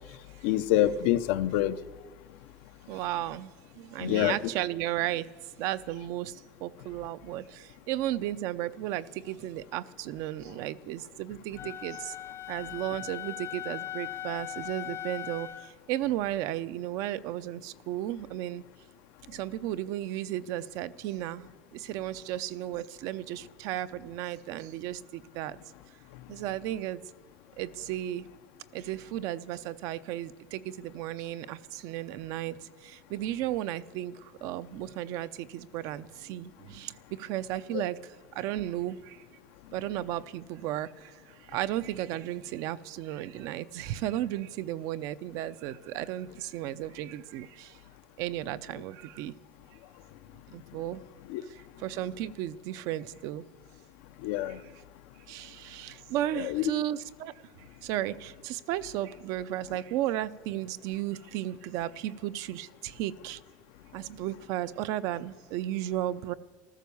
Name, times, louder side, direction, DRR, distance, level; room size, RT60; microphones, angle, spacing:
voice 1, 0.4-1.8 4.0-4.4 37.7-37.8 51.3-51.4 54.2-54.6 56.4-56.7, left 13 dB, 85° left, 11 dB, 0.8 m, -26 dB
voice 2, 2.9-5.3 5.6-12.1 12.5-18.6 19.3-25.6 26.3-27.0 27.6-28.3 28.7-39.2 39.7-47.8 48.2-49.3 50.5-51.0 51.5-53.5 54.5-54.6 55.3-57.3 57.8-63.4 63.9-66.3, right 13 dB, 65° right, 14 dB, 0.6 m, -34 dB
Wind instrument woodwind instrument, 11.6-15.7, left 12 dB, 40° left, 0.6 m, -39 dB
14.0 x 14.0 x 7.0 m, 1.5 s
cardioid pair, 155°, 6 cm